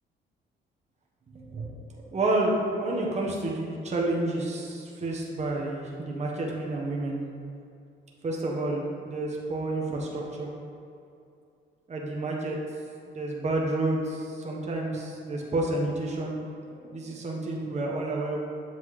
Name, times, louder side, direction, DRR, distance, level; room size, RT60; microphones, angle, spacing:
voice 1, 1.3-7.2 8.2-10.5 11.9-12.6 13.1-16.4 16.9-18.4, right 2 dB, 35° right, -2 dB, 1.1 m, -30 dB
7.4 x 5.8 x 3.2 m, 2.6 s
cardioid pair, 90°, 20 cm